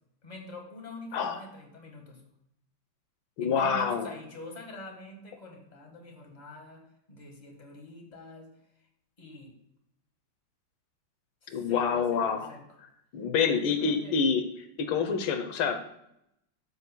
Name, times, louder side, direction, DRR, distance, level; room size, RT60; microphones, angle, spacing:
voice 1, 0.2-2.2 3.4-8.5 9.2-9.5 11.4-12.8 13.5-14.2, left 1 dB, 25° left, 1 dB, 1.6 m, -45 dB
voice 2, 3.4-4.1 11.5-12.5 13.1-14.4 14.8-15.9, left 6 dB, 85° left, 8 dB, 1.7 m, -27 dB
12.0 x 7.2 x 2.2 m, 0.79 s
omnidirectional pair, 2.1 m